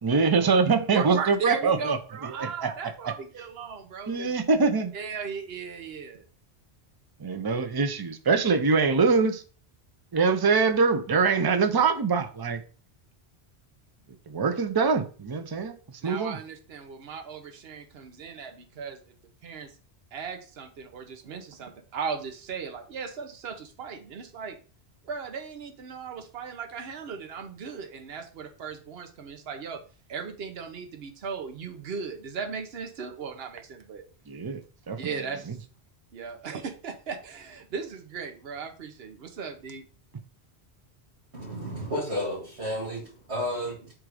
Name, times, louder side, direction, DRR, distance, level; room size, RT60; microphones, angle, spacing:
voice 1, 0.0-2.7 4.1-4.9 7.2-9.4 10.1-12.6 14.3-16.4 34.3-34.6 34.9-35.2 35.5-35.6, right 4 dB, 25° right, 0.5 m, -24 dB
voice 2, 0.6-4.3 4.9-6.2 16.0-19.0 19.4-19.7 20.1-24.6 25.0-29.8 30.1-34.0 35.0-35.6 36.1-39.8, right 6 dB, 70° right, 1.1 m, -37 dB
voice 3, 41.3-43.9, equal, 85° right, 2.3 m, -32 dB
7.6 x 2.6 x 4.8 m
omnidirectional pair, 1.1 m